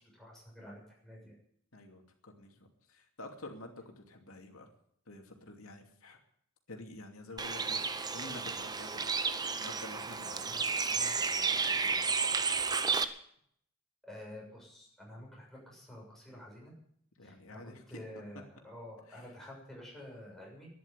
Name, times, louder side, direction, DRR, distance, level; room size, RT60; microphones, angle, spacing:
voice 1, 0.1-1.3 14.0-16.7 17.2-20.7, left 1 dB, ahead, -3 dB, 6.9 m, -49 dB
voice 2, 1.7-4.7 5.1-6.2 6.7-13.0 17.2-18.0 19.1-19.2, left 2 dB, 85° left, 3 dB, 2.7 m, -50 dB
Bird, 7.4-13.0, right 5 dB, 20° right, 0.7 m, -32 dB
12.0 x 11.0 x 9.8 m, 0.69 s
head